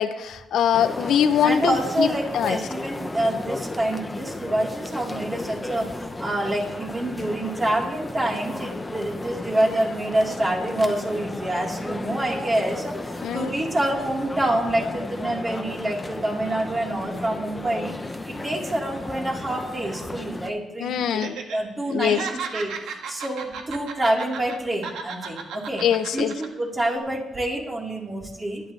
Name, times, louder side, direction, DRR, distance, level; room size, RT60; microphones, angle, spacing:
voice 1, 0.0-2.1 2.3-2.6 13.2-13.5 20.8-21.4 21.9-22.2 25.8-26.3, left 9 dB, 75° left, 11 dB, 0.9 m, -22 dB
sound 1, 0.7-20.5, left 2 dB, 15° left, 1.1 m, -34 dB
voice 2, 1.4-5.9 6.2-13.0 13.3-17.9 18.3-22.2 22.5-22.7 23.1-25.8 26.1-28.6, right 1 dB, 25° right, -2 dB, 4.3 m, -26 dB
Laughter, 21.1-21.6 21.9-24.6 24.8-26.5 26.8-27.0, right 6 dB, 80° right, 1.7 m, -34 dB
22.0 x 10.5 x 3.5 m, 1.0 s
cardioid pair, 90°, 0 cm